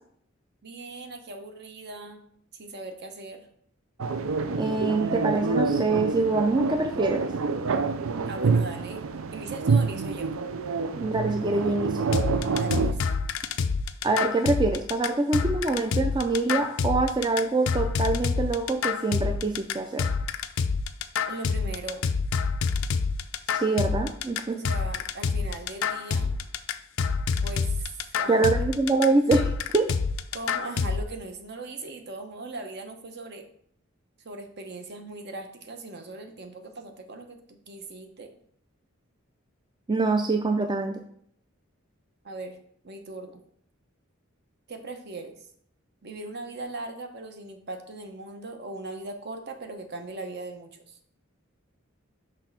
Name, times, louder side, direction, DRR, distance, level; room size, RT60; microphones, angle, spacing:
voice 1, 0.6-2.2 2.5-3.5 8.3-9.0 9.3-10.3 12.5-13.0 21.3-22.1 24.5-26.4 27.4-28.5 30.3-33.4 34.2-38.3 42.2-42.6 42.8-43.4 44.7-45.4 46.0-51.0, right 2 dB, 55° right, 6 dB, 0.9 m, -39 dB
sound 1, 4.0-12.9, right 4 dB, 90° right, 0.5 m, -27 dB
voice 2, 4.6-7.3 11.0-12.1 14.0-20.1 23.5-24.5 28.3-29.9 39.9-41.0, right 3 dB, 20° right, 5 dB, 0.4 m, -25 dB
sound 2, 12.1-31.0, left 5 dB, 85° left, 0.4 m, -27 dB
6.1 x 3.3 x 5.8 m, 0.65 s
head